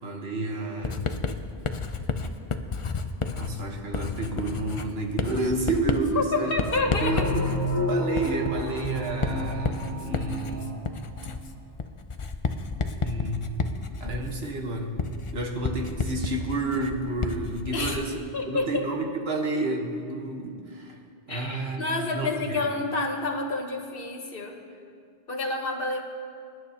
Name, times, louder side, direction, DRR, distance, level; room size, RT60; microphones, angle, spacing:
voice 1, 0.0-1.1 3.3-6.5 7.0-10.8 13.0-13.4 14.0-14.9 15.3-21.0 21.3-22.7, right 2 dB, 75° right, 2 dB, 1.5 m, -30 dB
Writing, 0.8-18.2, left 4 dB, 40° left, 0.5 m, -32 dB
voice 2, 6.1-7.3 17.7-18.0 18.3-18.9 21.3-24.6 25.3-26.0, left 3 dB, 60° left, 3 dB, 1.4 m, -29 dB
sound 1, 6.8-11.3, equal, 20° right, 2.3 m, -30 dB
24.0 x 11.0 x 2.9 m, 2.2 s
omnidirectional pair, 1.1 m